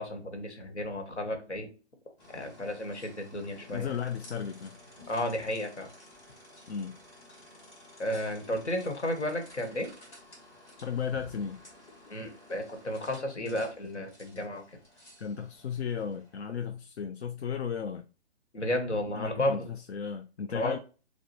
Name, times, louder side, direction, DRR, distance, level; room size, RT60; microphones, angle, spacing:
voice 1, 0.0-1.7 2.3-3.9 5.1-5.9 8.0-9.9 12.1-14.6 18.5-19.7 20.5-20.8, left 1 dB, 85° left, 1.2 m, -33 dB
sound 1, 2.2-16.6, left 1 dB, 20° left, 1.3 m, -54 dB
voice 2, 3.7-4.8 6.7-7.0 10.8-11.6 15.2-18.1 19.1-20.8, left 7 dB, 70° left, 0.5 m, -35 dB
4.9 x 2.2 x 2.7 m
figure-of-eight pair, 135°, 34 cm